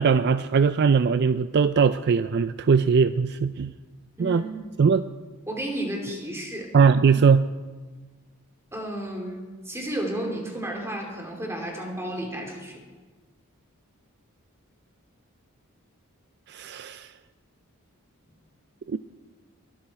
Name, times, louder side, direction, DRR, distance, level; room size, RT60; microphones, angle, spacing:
voice 1, 0.0-3.7 4.2-4.4 4.8-5.1 6.7-7.5 16.5-17.1 18.9-19.0, right 5 dB, 50° right, 12 dB, 0.4 m, -20 dB
voice 2, 4.2-4.7 5.5-6.7 8.7-12.8, right 1 dB, 10° right, 1 dB, 2.9 m, -32 dB
22.5 x 13.0 x 4.3 m, 1.4 s
head